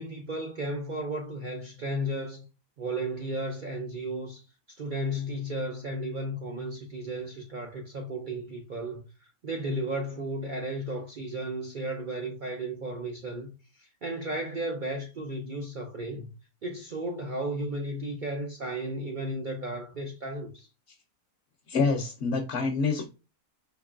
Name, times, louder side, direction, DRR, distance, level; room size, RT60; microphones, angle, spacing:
voice 1, 0.0-2.4 2.8-4.4 4.7-16.3 16.6-20.7, right 1 dB, 65° right, 0.4 m, -34 dB
voice 2, 21.7-23.1, left 4 dB, 60° left, 0.9 m, -26 dB
4.5 x 2.9 x 2.4 m
omnidirectional pair, 1.6 m